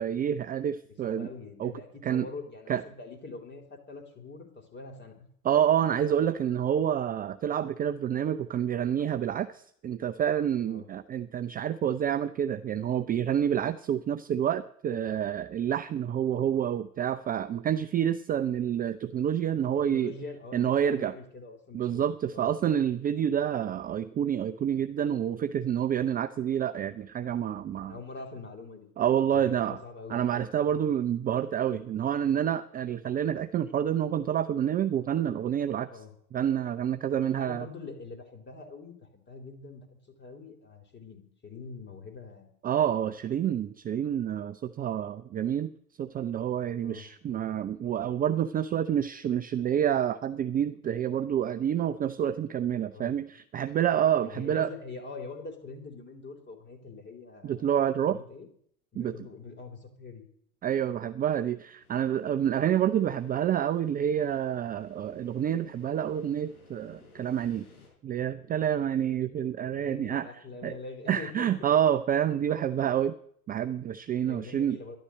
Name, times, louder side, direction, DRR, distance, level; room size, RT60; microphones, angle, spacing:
voice 1, 0.0-1.3 1.6-1.7 2.0-2.3 2.7-2.8 5.4-20.1 20.5-21.1 21.7-28.0 29.0-29.8 30.1-35.9 36.3-37.7 42.6-45.7 46.0-54.7 57.4-58.2 59.0-59.1 60.6-67.7 68.0-70.8 71.1-73.1 73.5-74.8, right 9 dB, 20° right, 11 dB, 0.5 m, -28 dB
voice 2, 1.0-5.3 10.6-10.9 19.8-22.5 27.8-28.9 29.3-30.4 35.9-36.1 37.4-42.5 46.8-47.1 52.9-53.1 54.2-57.7 58.0-58.5 58.9-60.2 69.6-71.5 74.3-75.0, left 3 dB, 25° left, 4 dB, 3.9 m, -44 dB
sound 1, 61.8-67.9, left 3 dB, 75° left, 7.0 m, -58 dB
13.0 x 11.5 x 7.8 m, 0.64 s
figure-of-eight pair, 80°, 45 cm